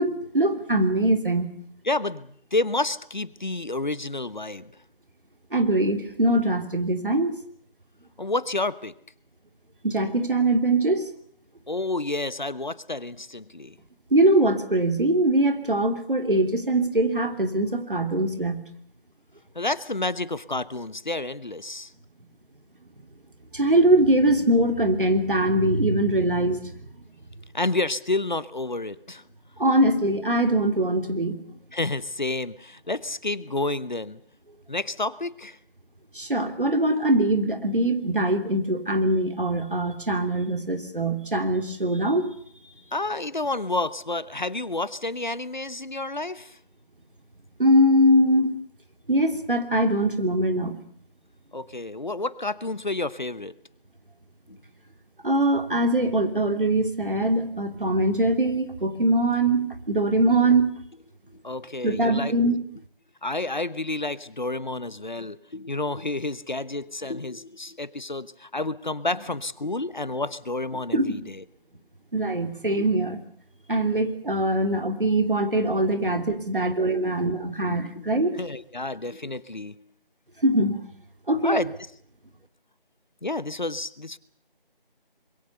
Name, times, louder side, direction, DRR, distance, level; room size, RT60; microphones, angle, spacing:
voice 1, 0.0-1.5 5.5-7.4 9.8-11.1 14.1-18.6 23.5-26.7 29.6-31.4 36.1-42.3 47.6-48.6 49.1-50.8 55.2-60.7 61.8-62.6 70.9-71.0 72.1-73.2 73.7-78.4 80.4-80.8 81.3-81.6, right 1 dB, 60° right, 7 dB, 3.0 m, -22 dB
voice 2, 1.9-4.7 8.2-8.9 11.7-13.7 19.5-21.9 27.5-29.2 31.7-34.2 34.7-35.6 42.9-46.6 51.5-53.5 54.5-54.6 61.3-62.3 63.2-71.4 72.8-72.9 76.1-76.2 76.8-77.2 77.7-78.1 78.4-79.7 81.4-81.7 83.2-84.2, left 2 dB, 50° left, 17 dB, 1.0 m, -30 dB
25.0 x 22.0 x 6.9 m, 0.62 s
figure-of-eight pair, 170°, 29 cm